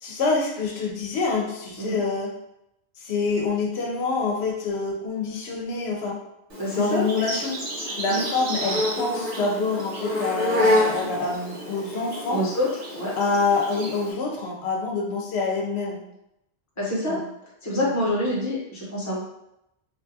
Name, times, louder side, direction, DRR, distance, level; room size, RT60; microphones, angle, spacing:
voice 1, 0.0-2.3 3.0-6.2 6.7-7.6 8.0-12.4 13.2-16.0 17.1-17.2 17.8-17.9, left 4 dB, 80° left, 0 dB, 0.8 m, -26 dB
Insect, 6.5-14.1, left 1 dB, 65° right, 1.0 m, -28 dB
voice 2, 6.6-7.1 8.0-8.3 12.3-12.7 12.9-13.1 15.0-15.2 16.8-17.2 17.6-19.2, equal, 20° left, -7 dB, 0.8 m, -26 dB
2.7 x 2.3 x 2.6 m, 0.82 s
omnidirectional pair, 1.1 m